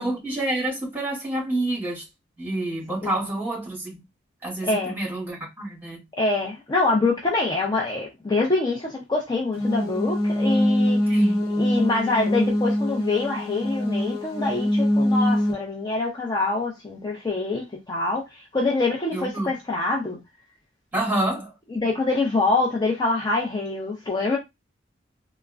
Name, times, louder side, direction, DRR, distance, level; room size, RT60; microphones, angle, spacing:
voice 1, 0.0-2.0 2.4-4.0 4.4-6.0 11.1-11.4 19.1-19.5 20.9-21.5, right 1 dB, 10° right, 1.8 m, -28 dB
voice 2, 4.6-5.0 6.1-11.1 11.6-20.2 21.7-24.4, left 3 dB, 25° left, 0.5 m, -25 dB
sound 1, 9.5-15.5, left 1 dB, 50° left, 0.9 m, -23 dB
3.5 x 2.0 x 2.3 m
head